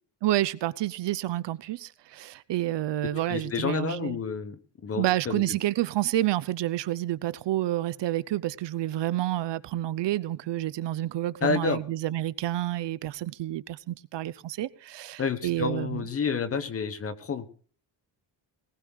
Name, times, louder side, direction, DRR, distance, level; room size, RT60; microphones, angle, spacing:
voice 1, 0.2-4.2 5.0-16.0, right 14 dB, 80° right, 0.8 m, -29 dB
voice 2, 3.3-5.4 11.4-11.8 15.2-17.5, left 5 dB, 35° left, 1.2 m, -29 dB
19.5 x 19.0 x 2.4 m
wide cardioid pair, 175°, 42 cm